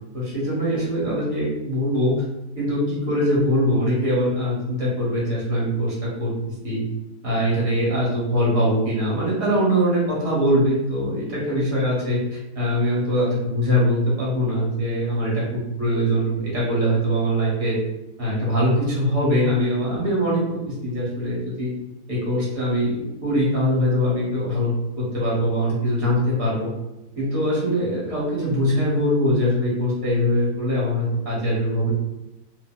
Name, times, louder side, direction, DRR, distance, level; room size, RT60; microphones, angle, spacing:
voice 1, 0.1-2.1 2.6-6.3 6.6-6.8 7.2-17.7 18.2-20.6 20.8-21.7 22.1-26.7 27.2-31.9, equal, 60° right, -6 dB, 1.5 m, -22 dB
2.9 x 2.7 x 2.3 m, 0.95 s
omnidirectional pair, 1.7 m